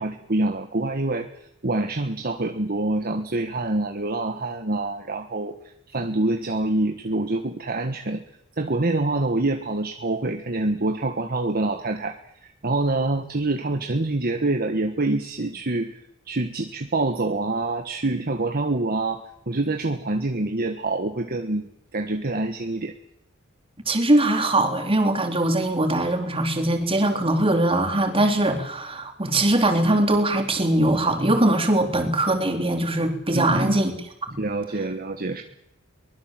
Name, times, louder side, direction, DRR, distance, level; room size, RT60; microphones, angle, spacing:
voice 1, 0.0-5.6 5.9-8.2 8.6-16.0 16.3-21.7 21.9-22.9 33.3-33.8 34.4-35.4, right 2 dB, 45° right, 5 dB, 1.5 m, -26 dB
voice 2, 23.9-33.9 34.2-34.4, right 1 dB, 25° right, 4 dB, 3.8 m, -21 dB
23.5 x 20.5 x 7.7 m, 0.78 s
head